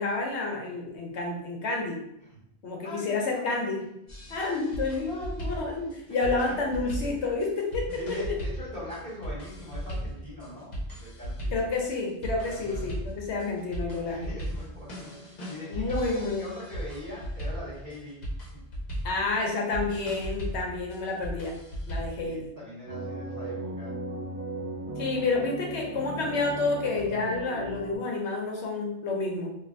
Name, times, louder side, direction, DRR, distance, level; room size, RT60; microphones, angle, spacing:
voice 1, 0.0-2.0 2.6-3.8 4.3-5.8 6.1-8.3 11.5-14.3 15.7-16.5 19.0-21.6 21.9-22.5 25.0-29.6, left 3 dB, 75° left, 0 dB, 0.9 m, -29 dB
voice 2, 2.8-3.7 5.1-6.0 7.9-11.5 12.4-12.9 14.0-18.2 18.5-18.6 21.9-23.9, left 1 dB, 35° right, -9 dB, 1.4 m, -42 dB
sound 1, 4.1-22.2, equal, 40° left, 0.9 m, -37 dB
sound 2, 22.9-28.0, right 1 dB, 5° right, 1.0 m, -36 dB
3.1 x 2.4 x 2.5 m, 0.79 s
omnidirectional pair, 1.2 m